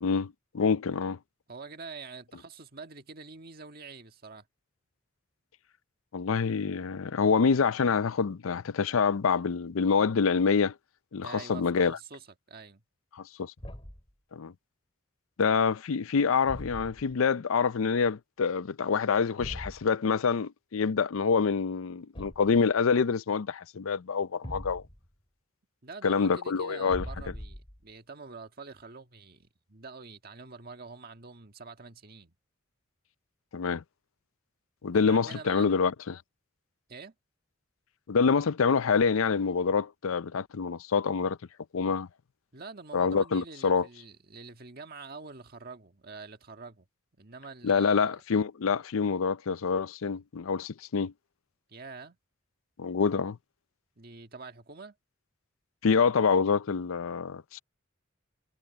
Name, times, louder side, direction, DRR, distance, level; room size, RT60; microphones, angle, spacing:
voice 1, 0.0-1.2 6.1-10.7 11.1-12.0 13.2-13.5 14.3-14.5 15.4-24.8 26.0-27.1 33.5-33.8 34.8-36.2 38.1-41.4 41.7-42.1 42.9-43.9 47.6-51.1 52.8-53.4 55.8-57.6, left 5 dB, 85° left, 0.5 m, -26 dB
voice 2, 1.5-4.4 11.2-12.8 25.8-32.3 34.9-35.8 36.9-37.1 42.5-46.9 47.2-48.2 51.7-52.2 54.0-54.9, right 4 dB, 45° right, 1.6 m, -46 dB
Thump thud, 13.6-14.1 16.4-17.2 19.4-19.8 22.1-22.6 24.4-25.1 26.9-27.8, equal, 25° left, 3.2 m, -41 dB
head